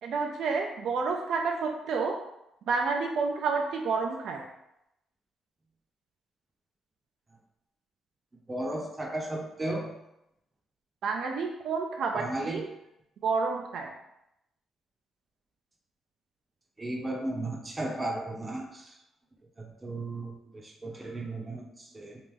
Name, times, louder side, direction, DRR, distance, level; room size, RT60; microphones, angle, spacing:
voice 1, 0.0-2.2 2.7-4.4 11.0-12.7 13.2-13.9, right 4 dB, 70° right, 1 dB, 0.4 m, -29 dB
voice 2, 8.5-9.9 12.1-12.6 16.8-18.9 19.6-22.2, right 1 dB, 25° right, 1 dB, 0.7 m, -35 dB
3.0 x 2.5 x 3.6 m, 0.83 s
cardioid pair, 90°, 0 cm